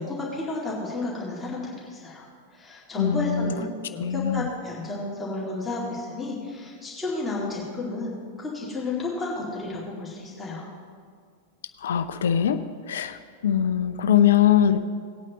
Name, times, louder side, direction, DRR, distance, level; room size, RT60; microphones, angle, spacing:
voice 1, 0.0-2.3 2.5-8.1 8.4-10.7, left 2 dB, 10° left, -6 dB, 2.2 m, -32 dB
voice 2, 3.0-3.5 4.0-4.5 11.8-12.6 12.9-13.2 13.4-14.8, left 9 dB, 60° left, 10 dB, 0.4 m, -21 dB
18.5 x 8.9 x 3.0 m, 2.1 s
figure-of-eight pair, 90°, 0 cm